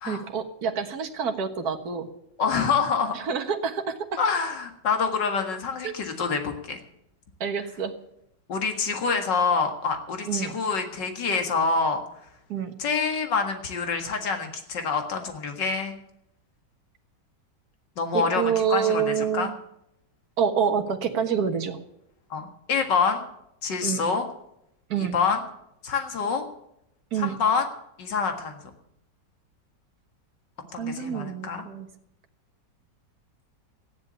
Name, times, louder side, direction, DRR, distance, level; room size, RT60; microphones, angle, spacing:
voice 1, 0.1-2.1 3.1-4.2 5.8-5.9 7.4-8.0 10.3-10.5 12.5-12.7 18.1-19.5 20.4-21.8 23.8-24.0 24.9-25.2 27.1-27.3 30.8-31.9, right 7 dB, 60° right, 5 dB, 1.9 m, -27 dB
voice 2, 2.4-3.1 4.2-6.8 8.5-12.0 12.8-15.9 18.0-19.5 22.3-23.2 23.6-24.3 25.0-25.4 25.8-26.4 27.2-27.6 28.0-28.6 30.7-31.6, left 5 dB, 80° left, 5 dB, 2.5 m, -26 dB
14.5 x 10.5 x 7.0 m, 0.79 s
omnidirectional pair, 1.9 m